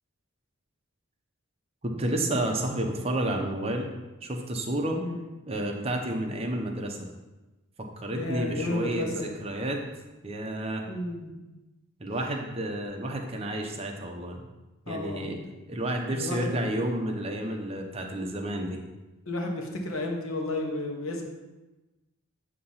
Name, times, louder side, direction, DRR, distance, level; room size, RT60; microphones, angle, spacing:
voice 1, 1.8-3.9 4.2-5.0 5.5-7.0 8.0-9.8 10.2-10.9 12.0-14.4 14.9-15.4 15.7-18.8, right 1 dB, 30° right, 2 dB, 0.7 m, -30 dB
voice 2, 8.2-9.2 10.9-11.3 14.9-15.5 16.1-16.6 19.3-21.2, left 2 dB, 80° left, 2 dB, 1.1 m, -32 dB
8.3 x 2.9 x 5.5 m, 1.1 s
head